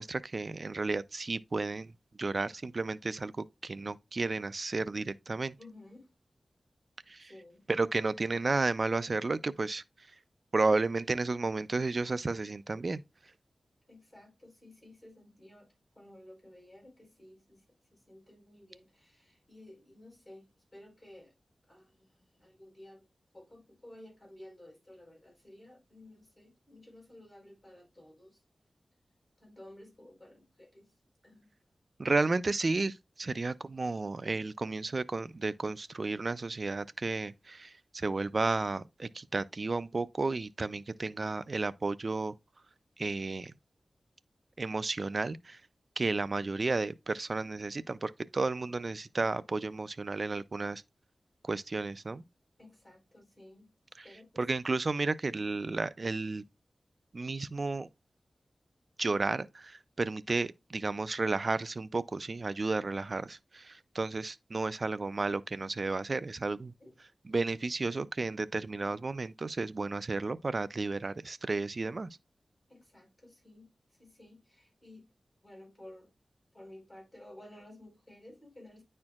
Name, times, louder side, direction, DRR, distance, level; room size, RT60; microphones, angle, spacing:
voice 1, 0.0-1.9 2.2-5.5 7.1-7.3 7.7-9.8 10.5-13.0 32.0-42.3 43.0-43.5 44.6-45.6 46.0-50.8 51.4-52.2 54.4-56.4 57.1-57.9 59.0-66.7 67.3-72.1, right 3 dB, 45° right, 0.4 m, -32 dB
voice 2, 5.6-6.1 7.2-7.7 13.9-17.6 17.9-21.3 21.7-23.0 23.3-28.4 29.4-30.9 31.2-31.5 33.2-33.5 52.6-53.7 54.0-54.4 66.8-67.0 72.7-73.7 74.0-75.1 75.4-76.1 76.5-78.8, left 1 dB, 20° left, 4.6 m, -54 dB
9.5 x 4.4 x 2.4 m
wide cardioid pair, 90°, 0 cm